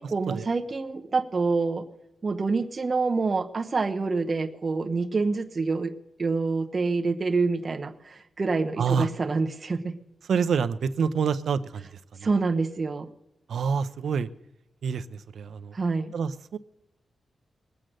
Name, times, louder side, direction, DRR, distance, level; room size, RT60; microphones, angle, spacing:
voice 1, 0.0-1.9 2.2-5.9 6.2-10.0 12.2-13.1 15.7-16.1, right 4 dB, 35° right, 5 dB, 0.9 m, -27 dB
voice 2, 8.8-9.1 10.3-11.9 12.2-12.3 13.5-14.3 14.8-15.7 16.1-16.6, right 6 dB, 75° right, 12 dB, 0.6 m, -27 dB
20.0 x 7.6 x 6.5 m, 0.88 s
wide cardioid pair, 160°, 0 cm